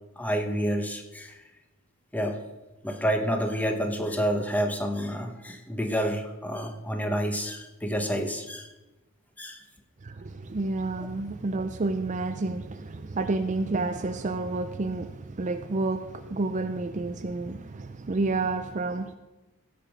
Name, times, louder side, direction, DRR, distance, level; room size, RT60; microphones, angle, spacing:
voice 1, 0.2-1.4 2.1-2.4 2.8-8.7 9.4-9.6, equal, 5° left, 5 dB, 1.0 m, -29 dB
voice 2, 10.0-19.2, right 3 dB, 35° right, 9 dB, 0.5 m, -30 dB
16.5 x 6.9 x 5.1 m, 1.1 s
head